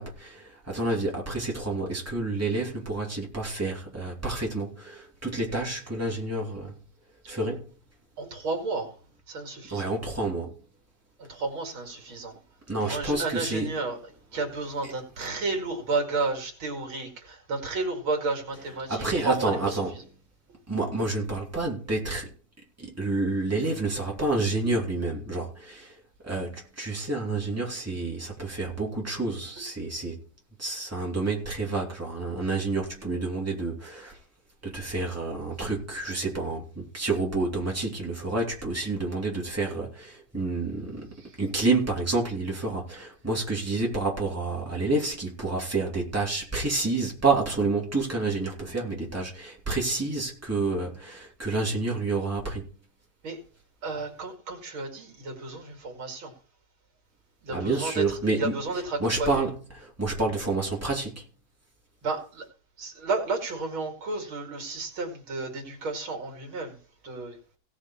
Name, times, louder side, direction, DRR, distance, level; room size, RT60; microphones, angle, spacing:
voice 1, 0.0-6.8 7.3-7.7 9.7-10.6 12.7-13.8 18.9-19.9 20.7-22.3 22.8-30.2 30.6-34.2 34.6-41.1 41.4-52.7 57.5-61.2, right 3 dB, 5° right, 2.9 m, -29 dB
voice 2, 8.2-8.9 9.3-9.9 11.3-12.3 12.8-20.1 41.2-41.3 53.2-53.4 53.8-56.3 57.4-59.4 62.0-62.5 62.8-66.8 67.0-67.4, right 3 dB, 80° right, 3.1 m, -32 dB
17.5 x 6.4 x 4.4 m
omnidirectional pair, 2.2 m